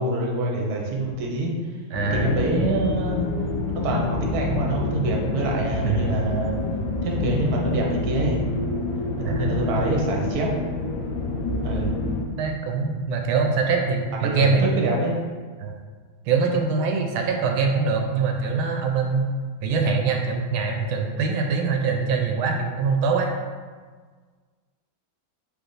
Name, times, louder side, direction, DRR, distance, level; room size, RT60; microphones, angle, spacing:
voice 1, 0.0-1.5 2.1-3.2 3.7-6.5 7.0-8.4 9.2-10.5 11.6-11.9 14.2-15.2, right 2 dB, 60° right, -1 dB, 1.2 m, -25 dB
sound 1, 1.9-12.2, left 2 dB, 75° left, 1.3 m, -27 dB
voice 2, 1.9-2.3 5.8-6.1 9.2-9.7 12.4-14.7 15.6-15.8 16.3-19.3 19.6-23.3, right 4 dB, 85° right, 3 dB, 1.4 m, -23 dB
3.9 x 3.5 x 3.8 m, 1.5 s
omnidirectional pair, 2.2 m